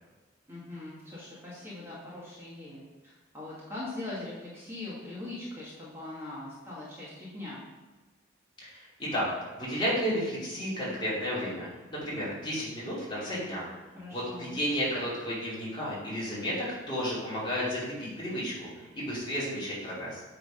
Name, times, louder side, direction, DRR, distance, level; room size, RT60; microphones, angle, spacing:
voice 1, 0.5-7.6 13.9-14.6, left 2 dB, 15° right, -8 dB, 1.9 m, -41 dB
voice 2, 8.6-9.3 9.6-13.6 14.1-20.2, equal, 25° left, -8 dB, 2.8 m, -32 dB
9.0 x 3.9 x 5.1 m, 1.2 s
head